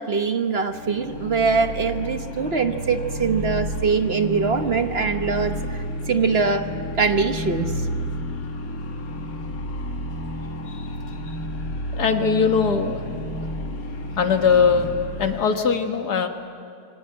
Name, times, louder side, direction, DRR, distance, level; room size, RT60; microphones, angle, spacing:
voice 1, 0.0-6.7 7.0-7.7, right 5 dB, 45° right, 7 dB, 1.2 m, -23 dB
sound 1, 0.7-15.5, equal, 65° left, 2.2 m, -31 dB
voice 2, 11.9-13.0 14.2-14.9 15.2-16.3, left 6 dB, 85° left, 6 dB, 2.1 m, -20 dB
26.5 x 24.0 x 8.9 m, 2.4 s
omnidirectional pair, 1.7 m